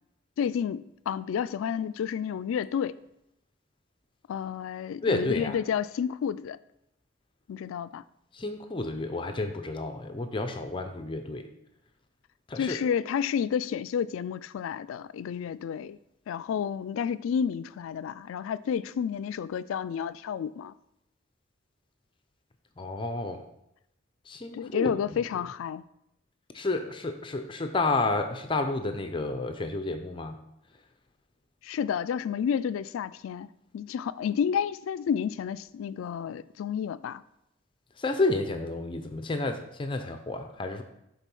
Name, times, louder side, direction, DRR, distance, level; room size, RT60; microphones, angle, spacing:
voice 1, 0.4-3.0 4.3-6.6 7.5-8.0 12.6-16.0 16.3-20.7 24.5-25.8 31.6-33.5 33.7-37.2, left 7 dB, 85° left, 0.3 m, -30 dB
voice 2, 5.0-5.6 8.3-11.5 12.5-12.8 22.8-23.4 24.3-24.9 26.5-30.4 38.0-40.8, left 2 dB, 25° left, 0.5 m, -30 dB
7.3 x 4.0 x 5.4 m
head